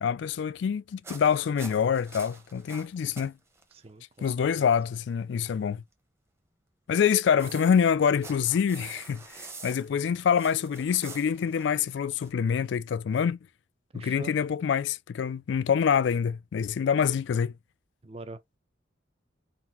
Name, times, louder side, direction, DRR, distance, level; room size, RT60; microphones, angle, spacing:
voice 1, 0.0-3.4 4.2-5.8 6.9-13.4 13.9-17.5, left 7 dB, 65° left, 0.3 m, -26 dB
sound 1, 1.0-3.3 3.6-3.8 4.2-4.3 7.0-12.3, right 3 dB, 15° right, 0.9 m, -46 dB
voice 2, 3.7-4.7 13.9-14.3 18.0-18.6, right 2 dB, 30° right, 0.6 m, -44 dB
3.9 x 2.5 x 4.2 m
head